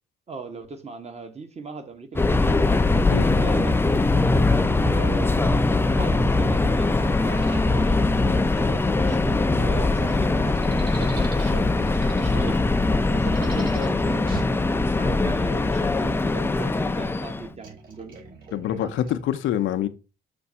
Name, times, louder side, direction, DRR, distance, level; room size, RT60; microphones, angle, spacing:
voice 1, 0.3-5.3 5.8-12.6 13.0-18.2, right 3 dB, 35° right, 1.3 m, -38 dB
Subway metro underground, 2.1-17.5, left 3 dB, 10° left, 0.4 m, -21 dB
voice 2, 3.1-3.6 18.5-19.9, left 11 dB, 80° left, 0.6 m, -26 dB
sound 1, 7.0-19.2, right 4 dB, 50° right, 3.9 m, -44 dB
6.7 x 2.6 x 5.5 m
cardioid pair, 90°, 20 cm